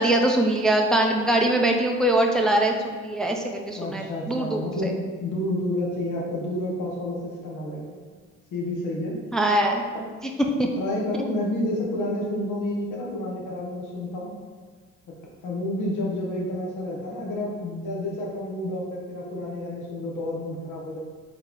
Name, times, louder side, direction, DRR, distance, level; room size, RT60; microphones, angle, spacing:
voice 1, 0.0-4.9 9.3-9.8 10.6-10.7, right 1 dB, ahead, 1 dB, 0.4 m, -22 dB
voice 2, 3.7-8.0 8.5-9.2 10.6-14.3 15.4-21.0, left 1 dB, 80° left, -2 dB, 1.0 m, -30 dB
3.9 x 3.1 x 3.8 m, 1.5 s
cardioid pair, 90°, 30 cm